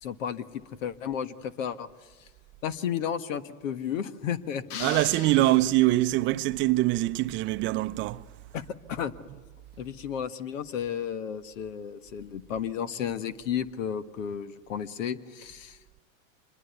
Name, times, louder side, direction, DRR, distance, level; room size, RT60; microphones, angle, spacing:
voice 1, 0.0-1.9 2.6-5.0 5.4-5.5 8.5-8.6 8.9-9.1 9.8-16.0, left 8 dB, 70° left, 1.6 m, -33 dB
sound 1, 4.7-6.2, left 8 dB, 45° left, 1.3 m, -41 dB
voice 2, 4.8-8.2, right 17 dB, 30° right, 0.7 m, -24 dB
26.5 x 22.0 x 8.3 m
hypercardioid pair, 120°, 40 cm